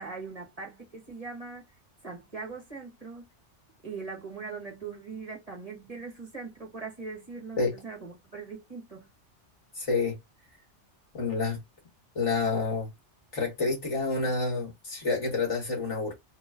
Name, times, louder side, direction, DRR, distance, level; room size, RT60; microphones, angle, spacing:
voice 1, 0.0-1.7 2.0-3.3 3.8-9.1, right 4 dB, 30° right, 1.8 m, -41 dB
voice 2, 9.8-10.1 11.1-11.6 12.2-12.9 13.3-16.1, left 4 dB, 75° left, 2.6 m, -28 dB
4.4 x 3.1 x 3.7 m
omnidirectional pair, 1.2 m